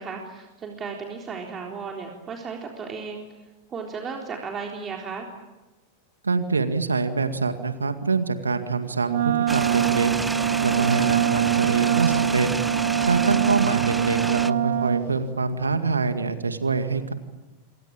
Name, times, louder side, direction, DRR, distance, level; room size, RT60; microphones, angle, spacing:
voice 1, 0.0-3.3 3.7-5.3 13.2-13.3, right 5 dB, 25° right, 1 dB, 3.8 m, -35 dB
voice 2, 6.2-10.1 10.6-12.5 13.0-17.1, right 4 dB, 85° right, 9 dB, 2.1 m, -25 dB
Wind instrument woodwind instrument, 9.1-15.1, right 11 dB, 65° right, 1.1 m, -23 dB
sound 1, 9.5-14.5, right 2 dB, 5° right, 0.9 m, -31 dB
27.5 x 24.0 x 8.9 m, 1.1 s
figure-of-eight pair, 90°, 0 cm